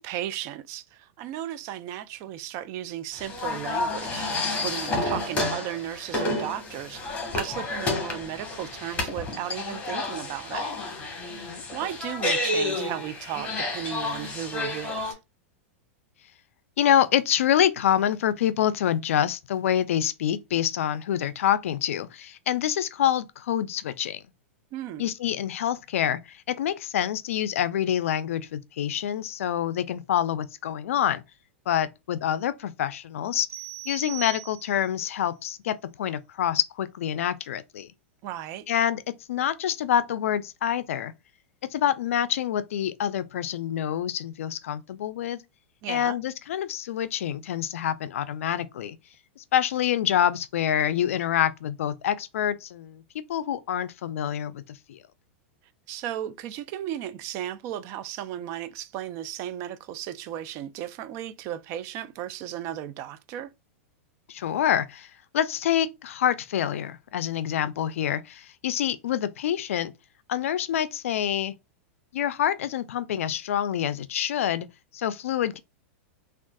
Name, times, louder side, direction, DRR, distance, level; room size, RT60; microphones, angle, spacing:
voice 1, 0.0-4.3 4.6-7.0 7.3-10.7 11.7-15.2 24.7-25.1 38.2-38.6 45.8-46.2 55.9-63.5, right 11 dB, 40° right, 0.3 m, -35 dB
sound 1, 3.1-15.1, left 2 dB, 20° left, 1.2 m, -30 dB
voice 2, 11.3-11.6 16.8-24.2 25.0-31.2 31.7-33.5 33.9-37.9 38.7-39.0 39.3-41.1 41.7-45.4 45.9-49.0 49.4-53.0 53.3-55.0 64.3-65.1 65.3-69.9 70.3-71.5 72.1-74.7 74.9-75.6, left 10 dB, 80° left, 0.4 m, -26 dB
sound 2, 33.5-35.0, right 16 dB, 80° right, 0.7 m, -39 dB
3.5 x 2.3 x 2.2 m
hypercardioid pair, 125°, 7 cm